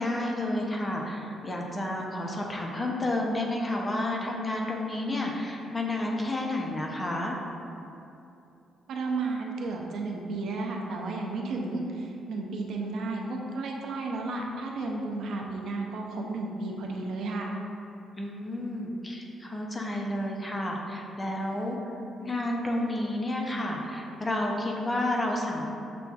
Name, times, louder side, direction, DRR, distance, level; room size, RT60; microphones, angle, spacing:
voice 1, 0.0-7.4 18.2-21.8 22.2-25.7, left 1 dB, 25° left, -1 dB, 0.6 m, -30 dB
voice 2, 8.9-17.5, right 3 dB, 70° right, 0 dB, 0.5 m, -33 dB
6.7 x 2.4 x 2.3 m, 2.8 s
cardioid pair, 90°, 0 cm